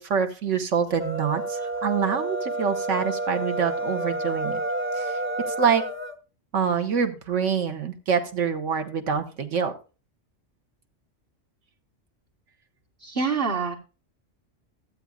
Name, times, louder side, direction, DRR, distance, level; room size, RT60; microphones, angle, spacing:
voice 1, 0.0-4.6 4.9-5.2 5.5-5.9 6.5-9.7, right 6 dB, 80° right, 6 dB, 1.4 m, -26 dB
sound 1, 0.9-6.2, right 2 dB, 15° right, 0.6 m, -29 dB
voice 2, 13.0-13.8, right 5 dB, 50° right, 0 dB, 1.3 m, -26 dB
14.5 x 8.3 x 2.4 m, 0.32 s
omnidirectional pair, 1.3 m